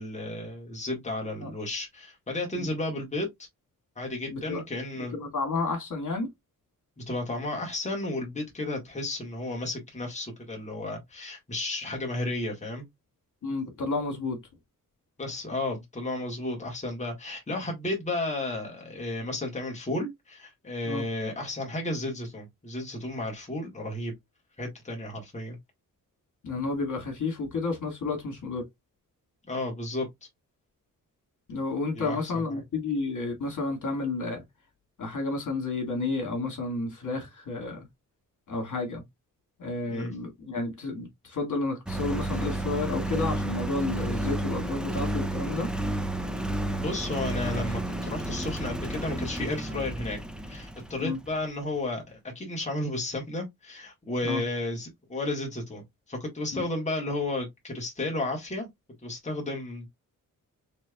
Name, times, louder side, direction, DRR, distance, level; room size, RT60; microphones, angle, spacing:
voice 1, 0.0-3.3 4.0-5.2 7.1-12.9 15.2-24.1 24.6-25.6 29.5-30.1 31.9-32.4 39.9-40.1 46.7-50.2 50.5-55.8 56.1-58.7 59.0-59.9, left 2 dB, 20° left, 1.8 m, -33 dB
voice 2, 4.3-4.6 5.1-6.3 13.4-14.4 20.8-21.0 26.4-28.6 31.5-34.4 35.0-37.9 38.5-39.0 39.6-45.7 51.0-51.2 54.2-54.4 56.5-56.6, left 3 dB, 65° left, 2.3 m, -31 dB
Engine, 41.9-51.3, right 1 dB, 5° right, 0.6 m, -31 dB
6.0 x 3.2 x 2.4 m
wide cardioid pair, 150°, 33 cm